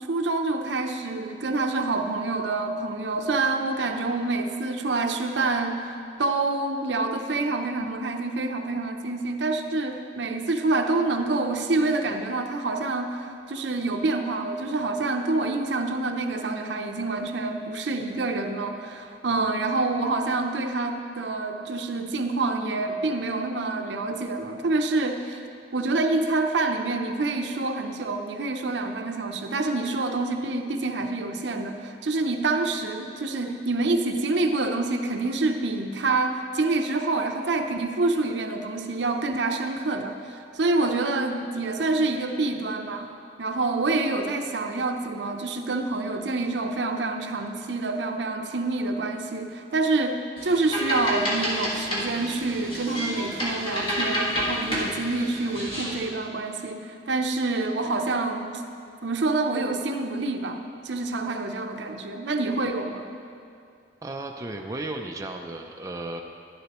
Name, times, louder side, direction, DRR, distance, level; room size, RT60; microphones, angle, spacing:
voice 1, 0.1-5.9 6.2-25.4 25.7-43.1 43.4-58.7 59.0-63.1, right 3 dB, 75° right, 5 dB, 0.7 m, -27 dB
voice 2, 19.2-19.5 64.0-66.2, right 2 dB, 20° right, 2 dB, 0.5 m, -35 dB
sound 1, 50.4-56.1, equal, 30° left, 1.7 m, -29 dB
11.5 x 11.0 x 3.0 m, 2.4 s
head